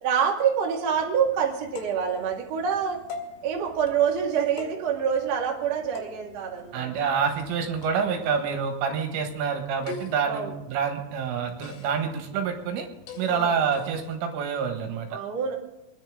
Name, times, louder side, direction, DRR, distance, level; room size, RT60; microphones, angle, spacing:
voice 1, 0.0-3.0 3.4-6.9 10.2-10.5 13.3-13.5 15.1-15.5, right 7 dB, 50° right, -1 dB, 2.1 m, -26 dB
sound 1, 0.9-14.2, left 5 dB, 75° left, 4.6 m, -45 dB
voice 2, 6.7-12.9 13.2-15.2, right 6 dB, 80° right, 4 dB, 3.9 m, -27 dB
24.5 x 10.5 x 3.7 m, 0.97 s
omnidirectional pair, 5.9 m